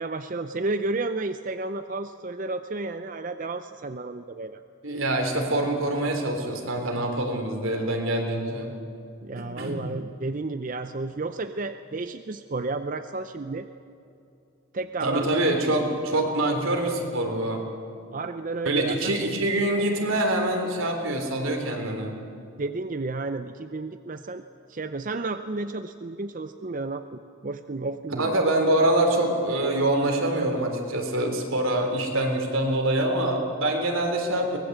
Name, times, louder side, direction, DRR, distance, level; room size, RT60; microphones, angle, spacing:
voice 1, 0.0-4.6 9.2-13.7 14.7-15.3 18.1-19.1 22.6-24.4 24.7-28.4, right 3 dB, 40° right, 9 dB, 0.6 m, -32 dB
voice 2, 4.8-8.7 9.4-9.8 15.0-17.6 18.6-22.2 28.2-34.6, right 1 dB, 80° right, 3 dB, 3.5 m, -25 dB
23.0 x 20.0 x 8.0 m, 2.7 s
head